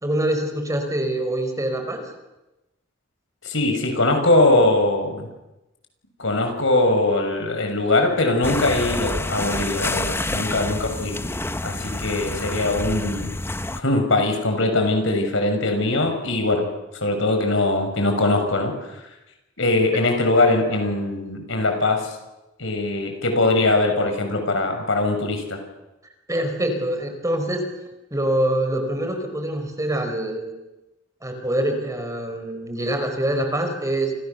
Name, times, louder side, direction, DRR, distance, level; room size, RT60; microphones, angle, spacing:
voice 1, 0.0-2.1 26.3-27.6 28.1-30.6 31.2-34.1, right 1 dB, 15° right, 5 dB, 4.9 m, -25 dB
voice 2, 3.4-5.3 6.2-11.2 11.6-13.3 13.8-16.7 16.9-18.7 19.6-22.2 22.6-25.6, left 2 dB, 70° left, 5 dB, 6.5 m, -21 dB
sound 1, 8.4-13.8, left 2 dB, 10° left, 0.9 m, -28 dB
28.5 x 28.0 x 7.0 m, 0.99 s
head